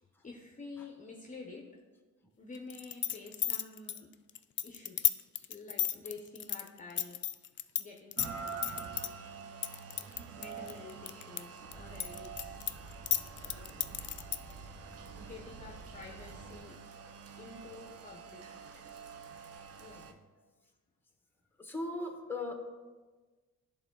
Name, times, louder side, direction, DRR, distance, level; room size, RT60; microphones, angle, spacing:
voice 1, 0.0-1.6 2.4-4.1 4.6-7.2 7.6-9.3 10.4-12.7 13.4-14.0 15.2-16.8 17.4-18.4 18.7-18.8 19.8-20.2, left 3 dB, 25° left, 0 dB, 0.8 m, -50 dB
sound 1, 2.7-7.8 8.1-9.1 9.6-11.4 11.7-14.5, left 11 dB, 40° left, 0.4 m, -32 dB
Rain, 8.2-20.1, right 5 dB, 50° right, 0.7 m, -47 dB
sound 2, 11.6-16.6, right 2 dB, 70° right, 2.4 m, -51 dB
voice 2, 21.6-22.6, left 2 dB, 5° left, 3 dB, 1.2 m, -37 dB
11.0 x 3.7 x 3.9 m, 1.3 s
cardioid pair, 90°, 30 cm